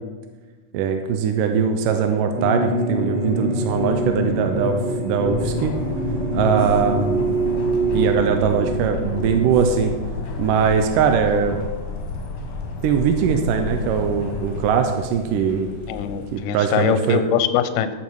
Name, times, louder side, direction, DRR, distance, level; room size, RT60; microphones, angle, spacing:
voice 1, 0.7-5.7 6.3-7.3 7.9-9.9 10.4-11.6 12.8-15.7 16.3-17.2, right 6 dB, 75° right, 5 dB, 2.1 m, -21 dB
sound 1, 2.3-10.5, right 2 dB, 35° right, 2.1 m, -25 dB
sound 2, 3.7-16.5, left 1 dB, 20° left, 0.7 m, -39 dB
sound 3, 5.2-14.6, left 5 dB, 60° left, 1.8 m, -31 dB
voice 2, 15.9-17.9, left 10 dB, 75° left, 11 dB, 2.0 m, -22 dB
14.5 x 7.1 x 4.7 m, 1.3 s
omnidirectional pair, 4.3 m